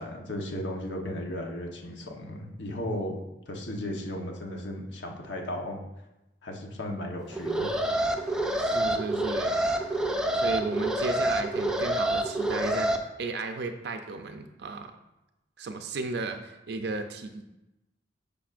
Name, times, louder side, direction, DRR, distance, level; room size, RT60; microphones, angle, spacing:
voice 1, 0.0-5.8 6.4-7.7, left 1 dB, 80° left, 1 dB, 1.1 m, -35 dB
Alarm, 7.3-13.0, right 1 dB, 5° right, 0.5 m, -27 dB
voice 2, 8.6-9.9 10.3-12.9 13.2-14.9 15.6-17.4, right 3 dB, 65° right, 6 dB, 0.5 m, -34 dB
10.0 x 5.2 x 2.5 m, 0.96 s
head